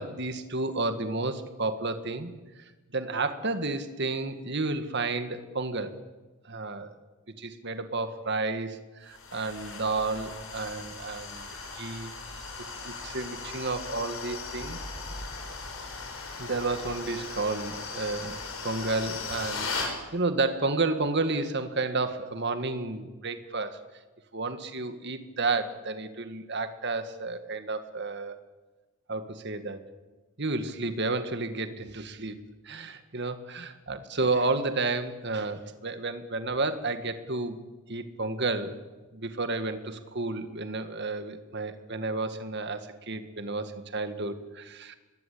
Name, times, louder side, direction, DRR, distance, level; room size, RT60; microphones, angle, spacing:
voice 1, 0.0-6.0 6.5-6.9 7.4-12.1 12.8-14.9 16.4-18.4 18.6-23.8 24.3-28.4 29.1-29.8 30.4-32.4 32.6-37.6 37.9-38.8 39.1-45.0, right 3 dB, 50° right, 9 dB, 1.9 m, -31 dB
sound 1, 9.1-19.9, left 4 dB, 65° left, 5.8 m, -38 dB
25.0 x 21.5 x 8.6 m, 1.2 s
head